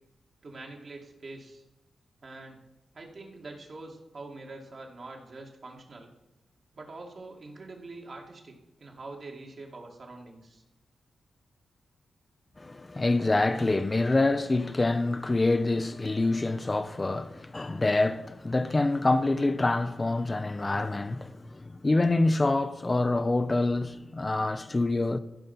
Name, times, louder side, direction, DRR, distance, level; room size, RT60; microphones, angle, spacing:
voice 1, 0.4-1.6 2.2-2.6 2.9-6.1 6.7-8.5 8.8-10.6, right 2 dB, 55° right, 2.3 m, -44 dB
voice 2, 12.6-25.2, left 2 dB, 30° left, 0.7 m, -26 dB
15.5 x 5.2 x 5.5 m
supercardioid pair, 40°, 0 cm